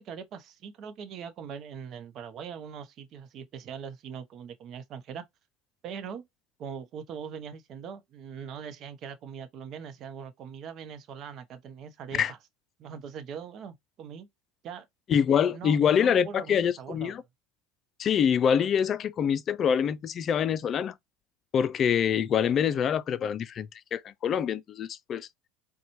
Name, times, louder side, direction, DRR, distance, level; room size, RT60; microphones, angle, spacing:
voice 1, 0.0-5.2 5.8-6.3 6.6-12.4 12.8-14.3 14.6-14.9 15.5-17.1, right 7 dB, 50° right, 0.8 m, -41 dB
voice 2, 15.1-17.2 18.0-20.9 21.5-25.3, left 8 dB, 40° left, 0.4 m, -25 dB
4.0 x 2.2 x 3.0 m
hypercardioid pair, 80°, 0 cm